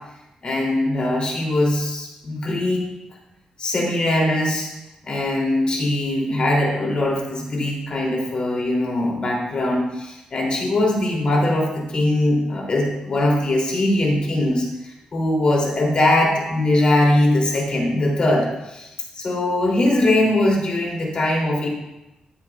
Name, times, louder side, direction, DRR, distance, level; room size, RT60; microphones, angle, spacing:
voice 1, 0.4-2.8 3.6-4.7 5.0-21.7, left 1 dB, 45° left, -2 dB, 2.9 m, -21 dB
13.0 x 9.5 x 2.4 m, 0.95 s
cardioid pair, 110°, 2 cm